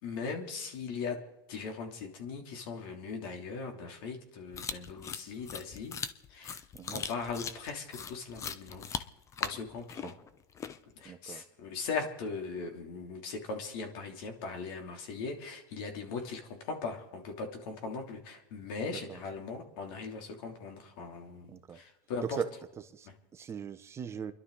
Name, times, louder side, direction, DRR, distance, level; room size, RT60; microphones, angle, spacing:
voice 1, 0.0-1.2 1.5-6.0 6.3-6.6 6.9-8.9 9.4-10.1 10.9-22.4 23.0-23.1, left 4 dB, 70° left, 3.0 m, -39 dB
sound 1, 4.5-11.0, left 7 dB, 25° left, 0.7 m, -40 dB
voice 2, 11.0-11.4 18.9-19.2 21.5-21.8 22.2-22.5 22.8-24.3, right 7 dB, 20° right, 0.8 m, -39 dB
29.0 x 11.5 x 4.0 m
supercardioid pair, 130°, 12 cm